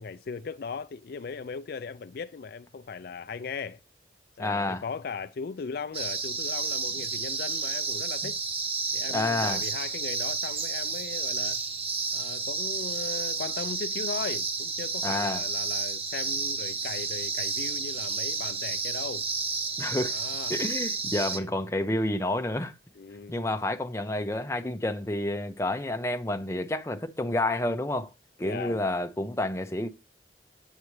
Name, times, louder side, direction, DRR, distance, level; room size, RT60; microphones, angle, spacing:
voice 1, 0.0-3.8 4.4-8.4 8.9-11.6 12.1-19.2 20.1-20.6 21.3-21.5 23.0-23.3 28.4-28.8, left 5 dB, 60° left, 0.4 m, -38 dB
voice 2, 4.4-4.8 8.2-8.3 9.1-9.6 15.0-15.5 19.8-20.2 20.5-22.7 23.3-28.1 28.4-29.9, left 1 dB, 15° left, 0.7 m, -29 dB
sound 1, 5.9-21.4, right 4 dB, 35° right, 0.9 m, -31 dB
8.8 x 8.2 x 3.2 m
head